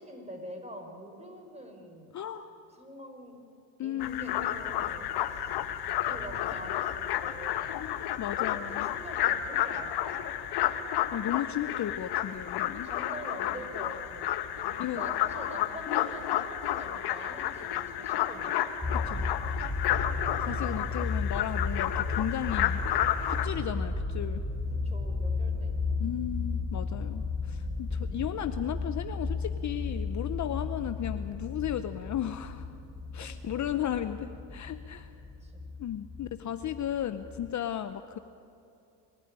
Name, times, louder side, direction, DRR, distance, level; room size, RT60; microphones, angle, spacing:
voice 1, 0.0-2.2 2.7-3.4 3.8-5.6 6.0-7.7 8.6-10.3 12.8-14.3 14.5-19.6 24.7-26.2 27.9-28.2 33.2-33.3 33.6-34.0 35.4-35.6, right 1 dB, 15° right, 3 dB, 5.0 m, -45 dB
voice 2, 2.1-2.5 3.8-4.5 7.7-8.9 11.1-12.9 14.8-15.1 15.9-16.1 19.1-19.3 20.4-22.8 23.3-24.4 26.0-32.7 33.1-35.1 35.8-38.2, left 11 dB, 40° left, 10 dB, 0.9 m, -35 dB
sound 1, 4.0-23.5, left 12 dB, 60° left, 1.4 m, -31 dB
sound 2, 18.8-37.5, left 3 dB, 5° left, 2.4 m, -34 dB
24.5 x 13.5 x 9.8 m, 2.6 s
supercardioid pair, 85°, 43 cm